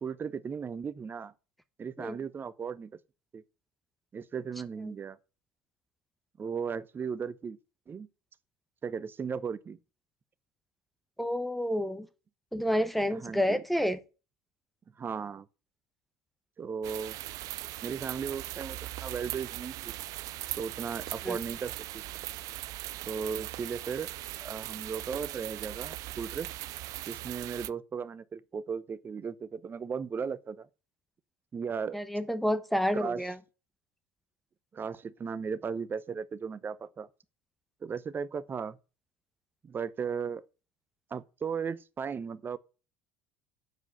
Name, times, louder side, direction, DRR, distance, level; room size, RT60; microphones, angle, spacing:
voice 1, 0.0-1.3 1.8-2.9 3.3-3.4 4.1-5.2 6.4-7.6 7.9-8.1 8.8-9.8 13.1-13.6 15.0-15.5 16.6-17.2 17.8-19.9 20.6-22.0 23.1-24.1 24.4-26.5 27.1-30.7 31.5-32.0 32.9-33.2 34.7-37.1 37.8-38.8 39.6-40.4 41.1-42.6, right 6 dB, 30° right, 0.7 m, -36 dB
voice 2, 11.2-12.1 12.5-14.0 21.2-21.4 31.9-33.4, equal, ahead, 0.9 m, -29 dB
sound 1, 16.8-27.7, right 17 dB, 55° right, 0.3 m, -39 dB
7.8 x 4.8 x 7.2 m
hypercardioid pair, 75°, 7 cm